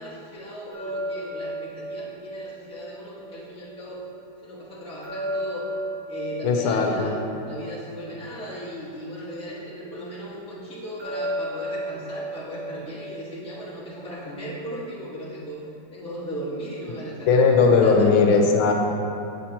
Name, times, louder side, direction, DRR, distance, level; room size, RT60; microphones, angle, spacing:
voice 1, 0.0-4.0 4.4-5.7 6.1-7.1 7.5-15.6 15.9-18.1, equal, 5° left, -9 dB, 1.0 m, -37 dB
sound 1, 0.7-3.8 5.0-8.5 11.0-14.1, right 1 dB, 65° right, 2.3 m, -34 dB
voice 2, 6.4-7.1 17.3-18.7, left 4 dB, 85° left, 2 dB, 1.4 m, -18 dB
7.4 x 5.8 x 2.8 m, 2.6 s
omnidirectional pair, 2.2 m